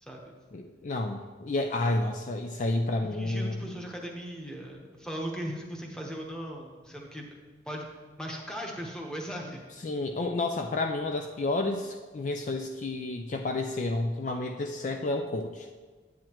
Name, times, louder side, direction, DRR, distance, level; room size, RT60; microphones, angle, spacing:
voice 1, 0.0-0.3 3.1-7.4 7.6-7.9 8.2-9.6, equal, 5° left, 0 dB, 0.9 m, -38 dB
voice 2, 0.5-3.6 9.8-15.7, left 2 dB, 40° left, 4 dB, 0.4 m, -30 dB
9.4 x 8.7 x 3.0 m, 1.4 s
head